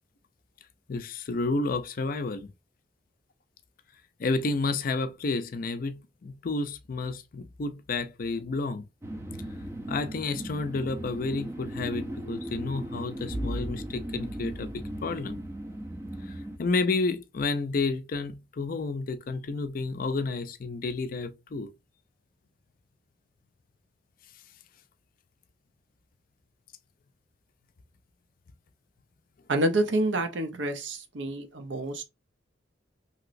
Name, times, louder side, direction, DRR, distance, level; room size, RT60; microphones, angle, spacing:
voice 1, 0.9-2.5 4.2-8.8 9.5-15.4 16.2-21.7, left 3 dB, 50° left, 0.4 m, -31 dB
sound 1, 9.0-16.6, right 1 dB, 15° right, 0.4 m, -38 dB
Bowed string instrument, 13.3-16.3, equal, 60° right, 1.4 m, -39 dB
voice 2, 29.5-32.1, right 1 dB, 80° right, 0.6 m, -28 dB
3.0 x 2.8 x 2.5 m
head